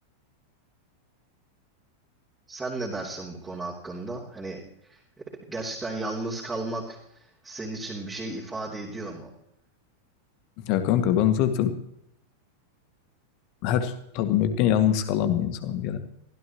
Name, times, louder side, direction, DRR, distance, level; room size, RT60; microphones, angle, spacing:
voice 1, 2.5-4.6 4.9-9.3, right 2 dB, 10° right, -5 dB, 3.2 m, -34 dB
voice 2, 10.6-11.7 13.6-16.0, left 10 dB, 45° left, 8 dB, 1.9 m, -23 dB
23.5 x 16.0 x 3.1 m, 0.78 s
figure-of-eight pair, 90°, 0 cm